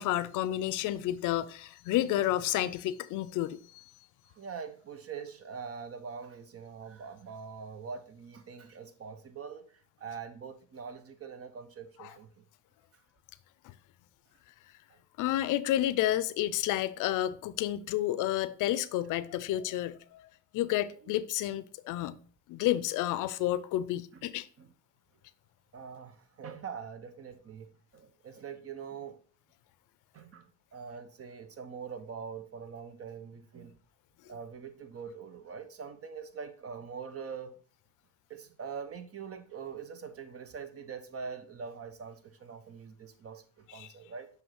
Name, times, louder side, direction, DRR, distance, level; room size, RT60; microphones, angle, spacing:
voice 1, 0.0-3.8 12.0-12.1 13.6-13.7 15.2-20.3 20.5-22.2 22.5-24.5 43.7-43.9, left 13 dB, 90° left, 0.5 m, -30 dB
voice 2, 4.4-12.4 14.9-15.0 21.0-21.2 24.1-24.3 24.6-24.7 25.7-29.2 30.1-33.8 34.2-37.5 38.3-44.3, right 6 dB, 50° right, 0.9 m, -43 dB
7.2 x 3.2 x 4.7 m
cardioid pair, 90°, 30 cm